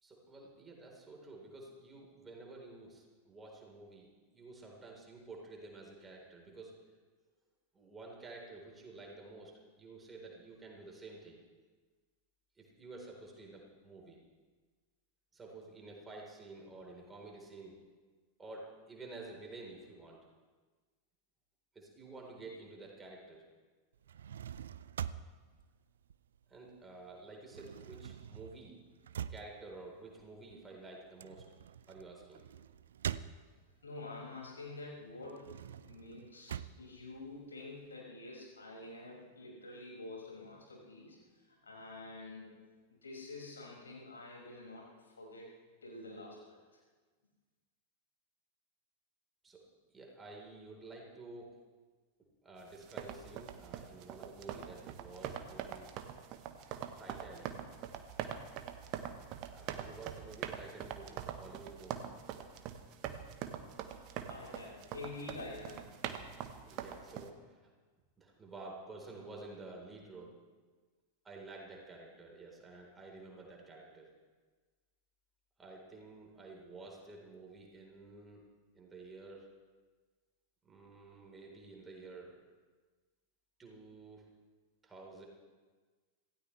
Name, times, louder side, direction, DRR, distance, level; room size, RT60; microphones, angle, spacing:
voice 1, 0.0-4.1 4.3-6.7 7.7-11.4 12.6-14.2 15.3-17.8 18.4-20.2 21.7-23.4 26.5-28.8 29.3-31.5 31.9-32.4 49.4-49.6 49.9-51.5 52.4-55.9 57.0-57.5 59.5-62.0 66.7-67.7 68.2-70.4 71.2-74.1 75.6-78.4 78.7-79.5 80.6-82.3 83.6-84.2 84.8-85.3, right 3 dB, 15° right, -1 dB, 4.1 m, -51 dB
sound 1, 23.9-26.8 27.1-33.9 34.3-37.9, right 9 dB, 65° right, 0.5 m, -45 dB
voice 2, 33.8-35.5 35.8-42.5 43.0-45.5 45.8-46.8 64.3-65.9, left 2 dB, 70° left, -3 dB, 6.0 m, -48 dB
sound 2, 52.7-67.3, right 9 dB, 40° right, 1.2 m, -44 dB
26.5 x 16.5 x 3.4 m, 1.4 s
figure-of-eight pair, 90°, 0 cm